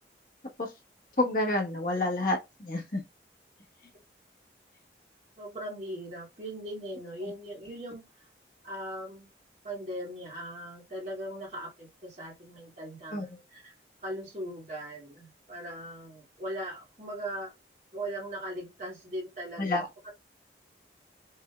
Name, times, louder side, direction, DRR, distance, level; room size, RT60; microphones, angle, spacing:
voice 1, 1.2-3.0 13.1-13.2 19.6-19.9, left 2 dB, 50° left, 1.3 m, -28 dB
voice 2, 5.4-8.0 8.6-9.3 9.6-13.7 14.0-17.5 17.9-20.1, right 1 dB, 40° right, 2.4 m, -39 dB
5.5 x 3.5 x 2.3 m
head